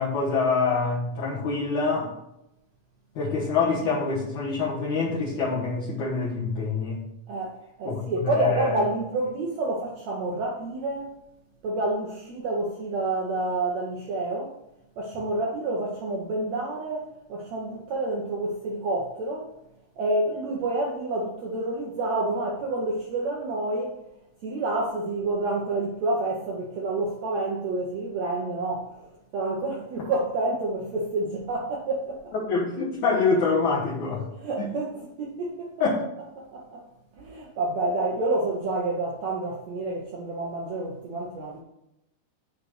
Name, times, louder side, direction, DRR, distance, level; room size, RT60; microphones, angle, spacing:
voice 1, 0.0-2.2 3.2-7.0 7.8-8.8 32.3-34.3 34.6-34.7 35.8-36.0, left 4 dB, 60° left, 2.3 m, -25 dB
voice 2, 7.3-11.1 11.6-14.5 15.0-19.5 20.0-24.0 24.4-32.3 34.4-35.7 36.4-36.8 37.2-41.6, right 2 dB, 90° right, 1.5 m, -29 dB
8.5 x 4.1 x 6.5 m
omnidirectional pair, 4.6 m